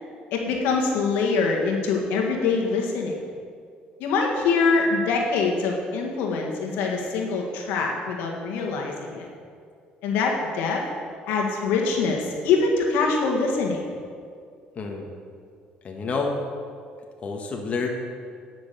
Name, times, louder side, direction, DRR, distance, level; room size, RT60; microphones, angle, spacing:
voice 1, 0.3-3.2 4.0-9.3 10.0-10.8 11.3-13.8, left 4 dB, 85° left, 0 dB, 1.6 m, -24 dB
voice 2, 14.7-15.1 15.8-16.4 17.2-17.9, left 4 dB, 40° left, 1 dB, 1.3 m, -28 dB
9.9 x 6.1 x 6.8 m, 2.2 s
cardioid pair, 95°, 3 cm